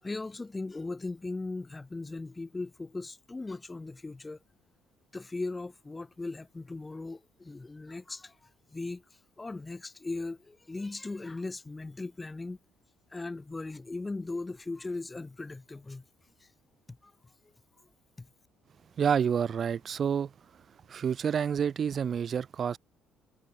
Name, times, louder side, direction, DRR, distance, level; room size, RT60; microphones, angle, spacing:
voice 1, 0.0-4.4 5.1-9.0 9.4-12.6 13.1-16.0 16.4-16.5 16.9-17.1 18.2-18.3, left 3 dB, 20° left, 4.9 m, -38 dB
voice 2, 19.0-20.6 20.9-22.8, right 7 dB, 50° right, 3.7 m, -29 dB
supercardioid pair, 65°, 0 cm